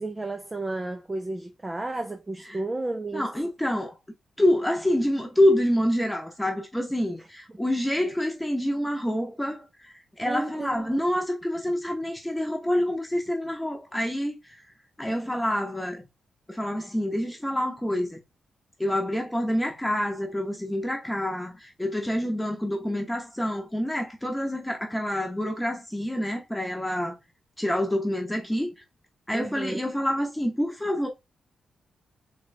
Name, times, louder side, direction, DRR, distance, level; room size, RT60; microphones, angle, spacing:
voice 1, 0.0-3.3 10.2-11.0 29.3-29.8, right 2 dB, 20° right, 0.5 m, -32 dB
voice 2, 3.1-4.0 4.4-9.7 10.2-14.4 15.0-16.0 16.5-18.2 18.8-27.1 27.6-28.7 29.3-31.1, left 1 dB, 5° left, 1.0 m, -27 dB
4.0 x 3.0 x 3.4 m
cardioid pair, 75°, 0 cm